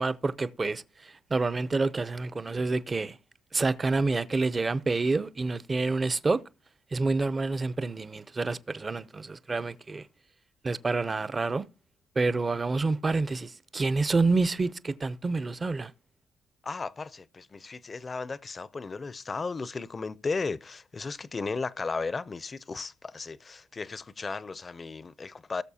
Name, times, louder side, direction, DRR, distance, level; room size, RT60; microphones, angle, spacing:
voice 1, 0.0-3.2 3.5-6.4 6.9-10.1 10.6-11.6 12.2-15.9, right 3 dB, 30° right, 0.5 m, -28 dB
voice 2, 16.6-25.6, left 4 dB, 30° left, 0.5 m, -35 dB
18.5 x 6.6 x 2.8 m
cardioid pair, 90°, 0 cm